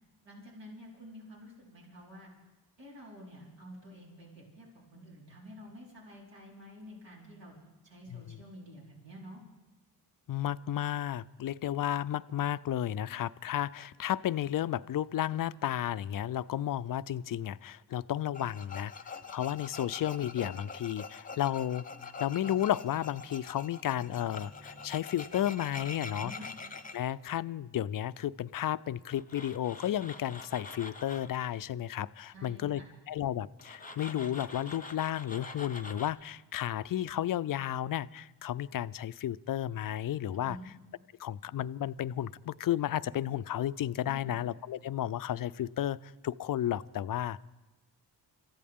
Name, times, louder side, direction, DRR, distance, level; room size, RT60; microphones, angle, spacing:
voice 1, 0.2-2.3 2.8-7.5 7.8-9.4 26.2-26.4 32.3-32.9 40.3-40.7 44.1-44.4, equal, 75° right, -4 dB, 4.4 m, -49 dB
voice 2, 10.3-18.9 19.3-21.8 22.2-26.3 26.9-32.8 33.1-40.6 41.2-47.4, left 11 dB, 50° left, 18 dB, 0.5 m, -33 dB
Tools, 18.3-27.0 29.1-31.4 33.6-36.1, left 4 dB, 20° left, 1.0 m, -45 dB
Bowed string instrument, 23.9-29.2, equal, 50° right, 7.0 m, -59 dB
26.5 x 14.5 x 3.6 m, 1.1 s
cardioid pair, 70°, 44 cm